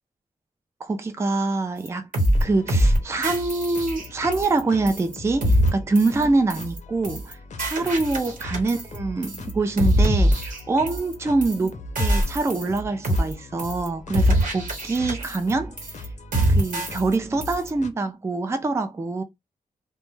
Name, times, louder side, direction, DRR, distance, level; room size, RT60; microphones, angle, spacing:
voice 1, 0.8-2.1 2.4-16.1 16.5-19.2, right 3 dB, 20° right, 0.3 m, -25 dB
sound 1, 1.9-2.0 2.1-2.4 2.7-3.0 3.2-4.6 4.9-5.1 5.4-5.7 6.0-6.2 6.5-6.8 7.0-7.3 7.6-9.0 9.2-9.5 9.8-11.1 11.4-11.7 12.0-12.8 13.0-13.3 13.6-13.9 14.1-15.5 15.8-16.1 16.3-17.1 17.4-17.7, equal, 80° right, 1.1 m, -23 dB
sound 2, 2.3-17.9, left 1 dB, 65° left, 0.5 m, -39 dB
2.2 x 2.1 x 3.0 m
wide cardioid pair, 90°, 14 cm